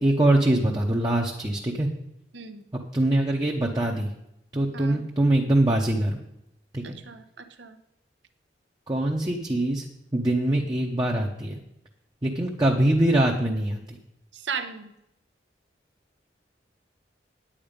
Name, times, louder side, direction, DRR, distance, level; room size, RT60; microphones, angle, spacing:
voice 1, 0.0-1.9 2.9-4.1 4.5-6.2 6.7-7.0 8.9-9.8 10.1-11.6 12.2-14.0, right 1 dB, 20° right, 0 dB, 0.8 m, -23 dB
voice 2, 6.8-7.8 14.3-14.9, right 6 dB, 85° right, 9 dB, 1.0 m, -36 dB
9.9 x 8.7 x 5.2 m, 0.83 s
head